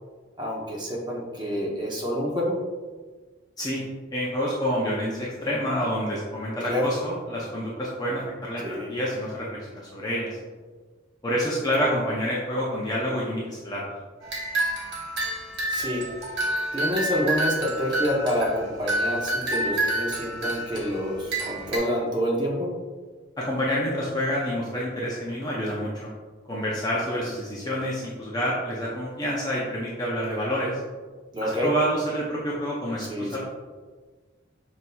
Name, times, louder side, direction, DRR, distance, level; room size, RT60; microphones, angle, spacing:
voice 1, 0.4-2.6 6.7-6.9 8.6-8.9 15.7-16.0 16.7-22.7 31.3-31.7 33.0-33.4, equal, 20° right, -3 dB, 0.8 m, -27 dB
voice 2, 4.1-8.6 8.9-10.4 11.2-13.9 23.4-26.1 26.5-30.7 31.4-33.4, equal, 20° left, -5 dB, 0.5 m, -28 dB
sound 1, 14.2-21.8, right 1 dB, 55° right, 1.0 m, -28 dB
5.9 x 2.6 x 2.3 m, 1.4 s
head